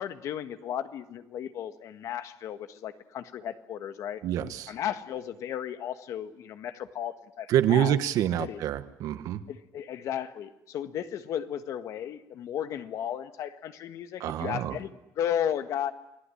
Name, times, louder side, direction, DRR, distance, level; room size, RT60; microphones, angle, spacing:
voice 1, 0.0-4.2 4.7-8.0 8.4-8.6 9.5-15.9, left 10 dB, 65° left, 10 dB, 1.6 m, -34 dB
voice 2, 4.2-4.7 7.5-9.4 14.2-14.8, right 11 dB, 80° right, 11 dB, 1.5 m, -26 dB
28.5 x 19.0 x 10.0 m, 0.88 s
cardioid pair, 175°, 6 cm